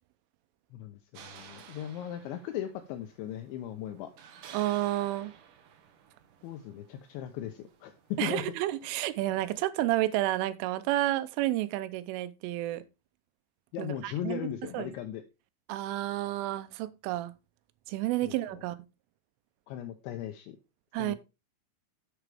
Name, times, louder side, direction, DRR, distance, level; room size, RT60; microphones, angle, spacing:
voice 1, 0.7-4.1 6.4-8.4 13.7-15.2 18.2-18.6 19.7-20.6 21.0-21.2, left 10 dB, 75° left, 3.0 m, -38 dB
sound 1, 1.1-9.6, right 8 dB, 65° right, 2.1 m, -54 dB
voice 2, 4.5-5.3 8.2-12.8 13.8-14.4 14.7-14.9 15.7-17.3 17.9-18.8 20.9-21.2, right 15 dB, 85° right, 3.3 m, -30 dB
11.0 x 8.0 x 3.4 m
omnidirectional pair, 5.6 m